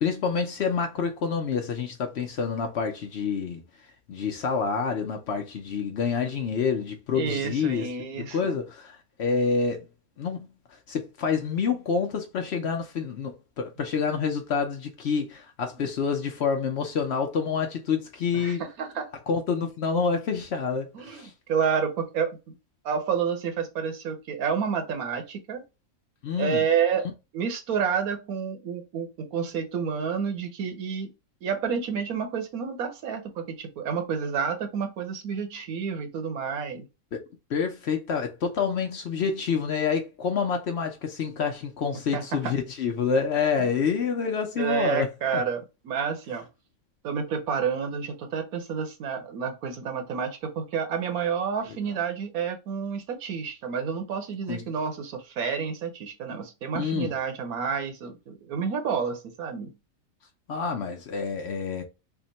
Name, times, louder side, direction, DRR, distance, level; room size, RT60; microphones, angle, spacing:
voice 1, 0.0-3.6 4.1-7.9 8.2-9.9 10.2-10.5 10.9-18.6 19.3-21.3 26.2-26.6 37.1-37.2 37.5-45.1 45.3-45.4 54.5-54.6 56.7-57.1 60.5-61.8, left 5 dB, 60° left, 0.8 m, -27 dB
voice 2, 7.1-8.6 18.3-19.1 20.9-22.5 22.8-25.6 26.4-31.1 31.4-36.9 42.1-42.5 43.6-43.7 44.6-46.5 47.0-59.7, right 6 dB, 85° right, 1.3 m, -29 dB
3.5 x 2.1 x 3.9 m
omnidirectional pair, 1.5 m